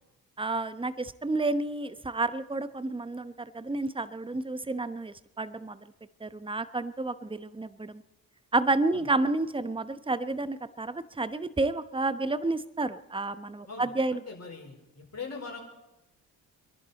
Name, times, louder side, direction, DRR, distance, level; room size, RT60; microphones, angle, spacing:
voice 1, 0.4-5.8 6.2-8.0 8.5-14.2, right 2 dB, 10° right, 13 dB, 1.0 m, -30 dB
voice 2, 13.7-15.6, left 4 dB, 35° left, 0 dB, 4.6 m, -42 dB
27.0 x 11.0 x 4.2 m, 0.95 s
hypercardioid pair, 45°, 46 cm